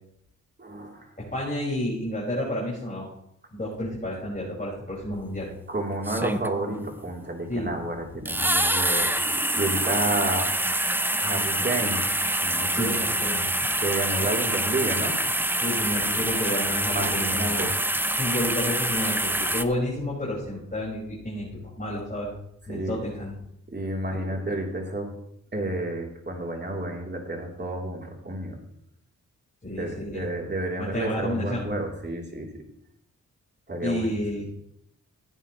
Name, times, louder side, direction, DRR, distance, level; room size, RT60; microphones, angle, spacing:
voice 1, 0.6-1.1 5.7-10.5 11.2-12.1 12.4-12.9 13.8-15.2 16.8-17.7 22.7-23.0 23.7-25.1 25.5-28.6 29.8-32.5 33.7-34.1, right 2 dB, 30° right, 0 dB, 3.5 m, -30 dB
voice 2, 1.2-3.1 3.5-5.5 6.2-6.3 7.5-7.7 12.7-13.5 15.6-17.7 18.1-22.3 22.7-23.3 24.1-24.3 29.6-30.3 30.8-31.7 33.8-34.4, left 1 dB, 25° left, -6 dB, 5.5 m, -30 dB
sound 1, 5.1-5.2 6.0-6.8 8.2-19.6, right 1 dB, 5° right, 0.7 m, -26 dB
16.0 x 9.4 x 3.2 m, 0.75 s
cardioid pair, 60°, 33 cm